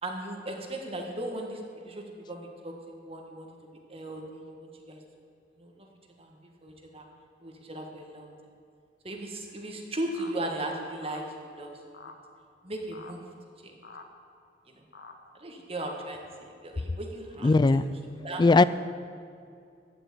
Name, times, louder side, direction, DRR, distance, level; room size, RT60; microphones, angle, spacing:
voice 1, 0.0-2.7 3.0-3.5 3.9-5.0 5.6-5.9 6.2-7.0 7.4-8.3 9.0-11.7 12.6-13.2 13.6-13.7 14.7-14.8 15.4-17.5 18.2-18.7, right 1 dB, 35° right, 2 dB, 1.6 m, -37 dB
sound 1, 10.1-10.3 11.0-11.2 11.9-12.2 12.9-13.1 13.8-14.1 14.9-15.2, left 4 dB, 65° left, 1.2 m, -46 dB
voice 2, 17.4-17.8 18.4-18.6, left 3 dB, 25° left, 16 dB, 0.3 m, -18 dB
15.0 x 6.1 x 9.5 m, 2.4 s
head